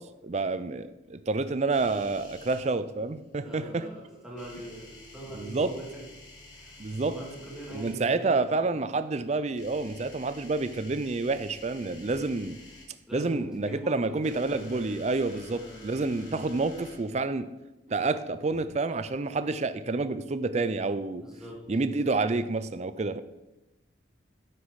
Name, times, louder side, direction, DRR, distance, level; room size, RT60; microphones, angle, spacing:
voice 1, 0.0-3.9 5.4-5.7 6.8-7.2 7.7-12.6 13.1-17.5 17.9-21.2 21.7-23.2, right 3 dB, 35° right, 12 dB, 0.4 m, -29 dB
sound 1, 1.7-2.6 4.3-7.9 9.5-12.8 14.0-17.0, left 2 dB, 90° left, 2.4 m, -50 dB
voice 2, 3.4-6.1 6.5-8.8 13.1-14.7 15.2-15.8 16.1-16.4 21.2-21.6, right 1 dB, 5° right, -4 dB, 1.7 m, -43 dB
9.5 x 6.0 x 4.8 m, 1.0 s
head